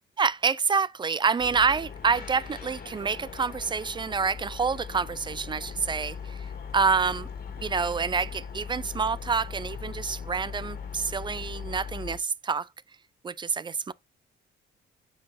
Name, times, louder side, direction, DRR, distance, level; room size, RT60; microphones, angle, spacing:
voice 1, 0.2-7.3 7.6-12.7 13.2-13.9, right 5 dB, 25° right, 0.3 m, -27 dB
sound 1, 1.4-12.2, left 6 dB, 50° left, 2.1 m, -39 dB
7.8 x 5.5 x 2.6 m
cardioid pair, 90°, 20 cm